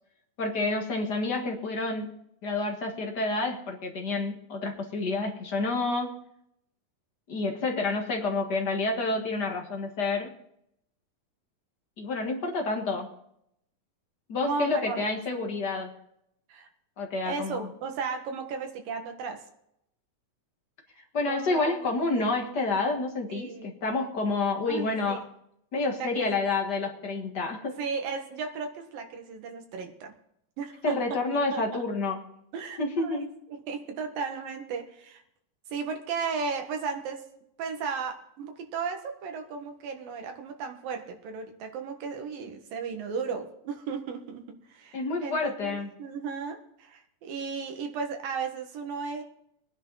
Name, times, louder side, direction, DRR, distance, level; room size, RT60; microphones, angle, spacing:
voice 1, 0.4-6.1 7.3-10.3 12.0-13.1 14.3-15.9 17.0-17.7 21.1-25.2 25.7-27.8 30.8-32.2 32.8-33.3 44.9-45.9, left 3 dB, 40° left, 1 dB, 1.6 m, -29 dB
voice 2, 14.4-15.1 16.5-16.7 17.2-19.4 21.3-21.8 22.2-22.3 23.3-23.7 24.7-25.3 25.8-26.4 27.8-30.1 30.6-31.2 31.5-31.8 32.5-33.3 33.7-35.2 35.7-37.2 37.6-49.2, right 5 dB, 85° right, 4 dB, 3.4 m, -35 dB
20.5 x 10.5 x 4.0 m, 0.75 s
omnidirectional pair, 3.9 m